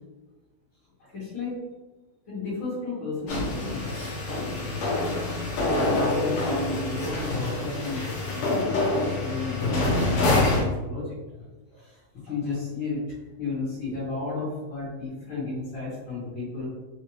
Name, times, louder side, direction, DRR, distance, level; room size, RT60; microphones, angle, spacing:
voice 1, 1.0-1.6 2.3-4.0 4.4-4.8 5.6-8.6 8.9-11.2 11.7-12.0 12.2-13.0 13.4-16.7, left 3 dB, 50° left, -12 dB, 1.7 m, -33 dB
sound 1, 3.3-10.7, left 2 dB, 65° left, 1.6 m, -26 dB
4.6 x 2.7 x 3.0 m, 1.2 s
omnidirectional pair, 3.5 m